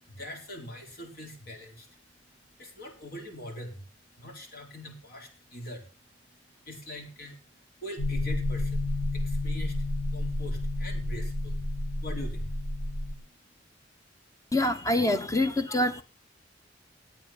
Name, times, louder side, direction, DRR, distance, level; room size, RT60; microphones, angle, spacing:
voice 1, 0.0-11.7 12.0-12.7 12.9-13.0 13.3-13.6, left 1 dB, 55° left, 4.4 m, -43 dB
sound 1, 8.0-13.1, left 1 dB, 40° left, 3.1 m, -30 dB
voice 2, 14.5-16.0, left 1 dB, 20° left, 1.2 m, -25 dB
13.5 x 8.9 x 5.8 m
head